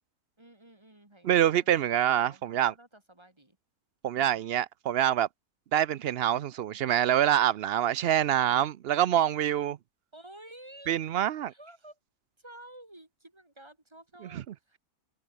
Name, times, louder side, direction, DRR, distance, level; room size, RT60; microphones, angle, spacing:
voice 1, 0.4-3.6 4.1-4.4 10.1-11.0 11.5-12.0 12.4-14.8, right 1 dB, 20° right, 2.4 m, -52 dB
voice 2, 1.2-2.7 4.0-5.3 5.7-9.8 10.9-11.5 14.3-14.4, right 11 dB, 65° right, 0.6 m, -26 dB
omnidirectional pair, 1.6 m